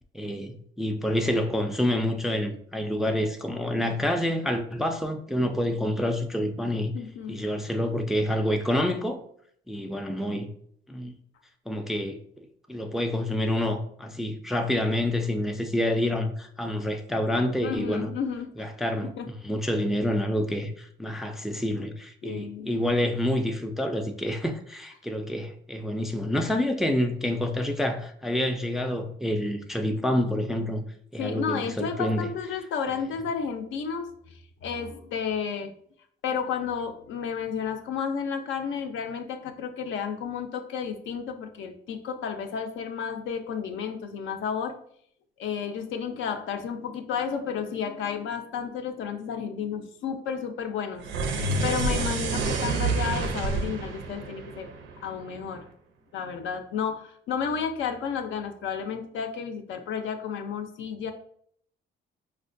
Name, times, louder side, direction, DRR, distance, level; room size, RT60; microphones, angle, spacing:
voice 1, 0.1-6.9 7.3-9.2 9.7-10.5 10.9-11.1 11.7-18.1 18.6-30.8 31.1-32.3, left 1 dB, ahead, 0.3 m, -28 dB
voice 2, 6.9-7.4 17.6-18.7 19.2-19.3 22.2-22.7 31.2-34.1 34.6-35.7 36.2-44.8 45.4-51.0 51.3-54.7 55.0-55.6 56.1-61.1, left 7 dB, 75° left, 0.5 m, -32 dB
sound 1, 51.0-55.4, right 3 dB, 80° right, 0.5 m, -28 dB
4.2 x 2.1 x 2.5 m
cardioid pair, 90°, 20 cm